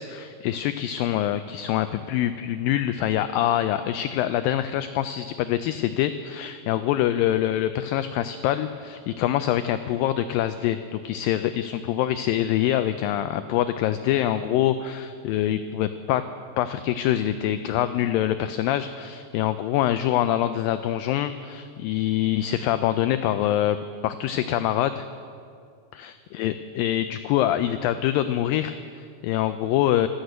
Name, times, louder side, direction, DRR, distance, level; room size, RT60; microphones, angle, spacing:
voice 1, 0.0-16.2 16.6-25.1 26.0-30.1, left 12 dB, 85° left, 11 dB, 2.0 m, -25 dB
13.0 x 13.0 x 8.0 m, 2.3 s
omnidirectional pair, 4.5 m